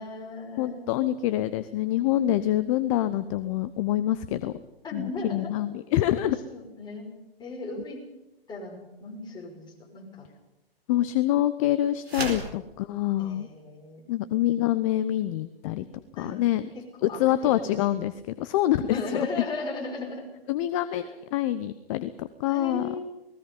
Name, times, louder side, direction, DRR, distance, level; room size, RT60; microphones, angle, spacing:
voice 1, 0.0-1.0 4.8-5.5 6.1-6.2 6.5-7.1 7.4-8.0 8.5-10.3 13.2-14.5 16.2-16.4 16.7-18.0 18.9-20.3 20.9-21.1 22.5-23.0, left 3 dB, 15° left, -1 dB, 6.0 m, -37 dB
voice 2, 0.6-4.5 4.9-6.4 10.9-13.5 14.1-15.8 16.2-16.6 17.0-18.1 18.4-19.3 20.5-21.0 21.3-22.9, left 13 dB, 35° left, 13 dB, 0.8 m, -26 dB
sound 1, 12.0-12.6, right 2 dB, 85° right, 4.6 m, -32 dB
29.0 x 19.0 x 5.5 m, 0.96 s
figure-of-eight pair, 120°, 30 cm